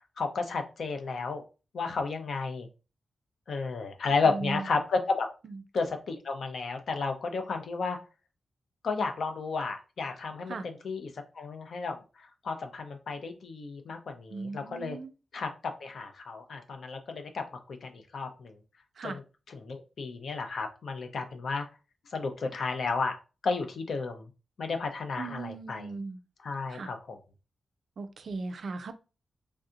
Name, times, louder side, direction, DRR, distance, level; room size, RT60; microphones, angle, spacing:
voice 1, 0.2-1.4 1.7-2.7 3.5-5.3 5.7-8.0 8.8-11.1 11.4-15.0 15.3-18.5 19.0-19.2 19.5-21.7 22.1-23.2 23.4-24.3 24.6-25.9 26.4-27.2, left 4 dB, 60° left, 0.6 m, -32 dB
voice 2, 4.1-4.7 5.4-5.6 10.5-10.7 14.3-15.1 19.0-19.2 25.2-26.2 26.7-26.9 28.0-28.9, right 3 dB, 55° right, 0.3 m, -38 dB
3.4 x 2.7 x 2.5 m
wide cardioid pair, 140°, 0 cm